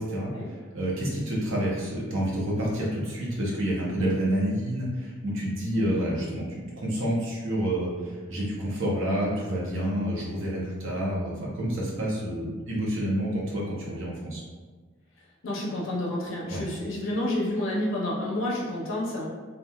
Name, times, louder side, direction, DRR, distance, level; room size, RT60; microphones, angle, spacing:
voice 1, 0.0-14.4 16.5-16.6, right 1 dB, 70° right, -4 dB, 0.7 m, -29 dB
voice 2, 15.4-19.3, left 1 dB, 75° left, -3 dB, 0.6 m, -29 dB
2.9 x 2.4 x 2.3 m, 1.4 s
head